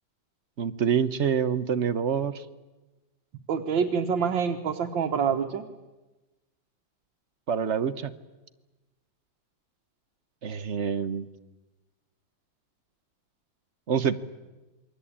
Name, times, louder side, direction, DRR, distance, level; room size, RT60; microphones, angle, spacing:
voice 1, 0.6-2.4 7.5-8.1 10.4-11.2 13.9-14.2, right 7 dB, 45° right, 12 dB, 1.2 m, -26 dB
voice 2, 3.5-5.6, right 6 dB, 85° right, 2 dB, 2.1 m, -26 dB
28.0 x 23.0 x 8.8 m, 1.1 s
omnidirectional pair, 2.0 m